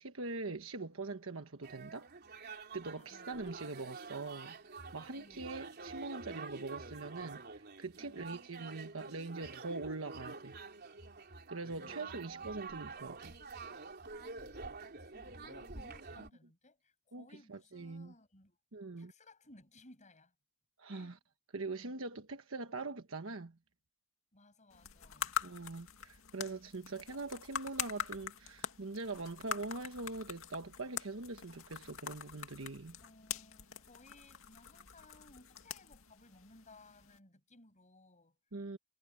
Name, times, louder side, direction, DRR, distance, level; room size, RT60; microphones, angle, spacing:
voice 1, 0.0-4.6 4.9-10.5 11.5-13.3 17.1-18.1 18.7-19.1 20.8-21.2 21.5-23.6 25.4-33.0 38.5-38.8, right 3 dB, 75° right, 1.3 m, -43 dB
sound 1, 1.6-16.3, right 4 dB, 50° right, 3.5 m, -48 dB
voice 2, 3.0-3.4 5.1-5.5 8.0-8.5 11.7-12.7 14.1-14.6 14.8-18.6 19.0-20.3 20.9-21.2 24.3-25.4 33.0-38.4, left 2 dB, 35° left, 7.2 m, -61 dB
sound 2, 24.7-37.2, left 8 dB, 90° left, 2.3 m, -44 dB
head